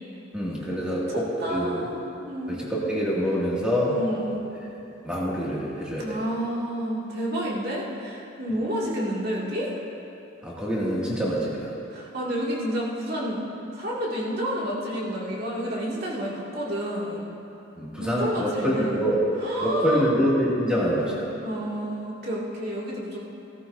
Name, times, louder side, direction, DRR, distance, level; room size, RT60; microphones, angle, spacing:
voice 1, 0.3-1.9 2.5-4.0 5.0-6.2 10.4-11.7 17.8-19.2 19.6-21.3, equal, 5° right, -7 dB, 2.3 m, -26 dB
voice 2, 1.4-2.6 3.9-4.4 6.0-9.7 11.9-13.4 13.7-17.2 18.0-19.0 19.4-20.0 21.4-23.3, equal, 50° right, -5 dB, 2.4 m, -30 dB
16.5 x 13.5 x 2.7 m, 2.8 s
head